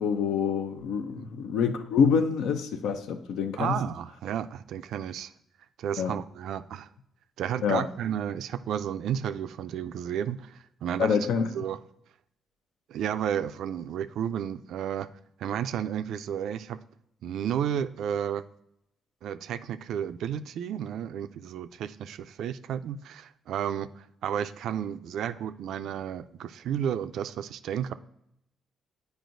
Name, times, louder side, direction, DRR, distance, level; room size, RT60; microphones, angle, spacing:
voice 1, 0.0-3.8 6.0-6.2 7.6-7.9 11.0-11.5, left 6 dB, 85° left, 0.6 m, -26 dB
voice 2, 3.6-5.3 5.8-6.9 7.4-11.2 11.5-11.8 12.9-15.1 15.4-16.8 17.2-18.4 19.2-27.9, right 9 dB, 75° right, 0.3 m, -32 dB
9.2 x 4.7 x 2.6 m
cardioid pair, 90°, 0 cm